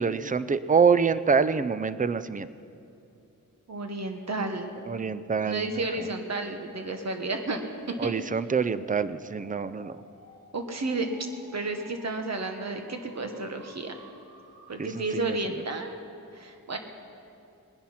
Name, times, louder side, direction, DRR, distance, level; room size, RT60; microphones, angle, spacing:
voice 1, 0.0-2.5 4.9-5.7 6.0-6.1 8.0-10.0 14.8-15.4, right 5 dB, 25° right, 14 dB, 0.4 m, -25 dB
voice 2, 3.7-4.7 5.4-7.6 8.0-8.2 10.5-13.9 14.7-16.0 16.3-16.8, right 2 dB, 50° right, 5 dB, 1.3 m, -32 dB
sound 1, 5.9-15.7, right 1 dB, 90° right, 4.5 m, -53 dB
19.5 x 10.5 x 5.8 m, 2.6 s
wide cardioid pair, 105°, 34 cm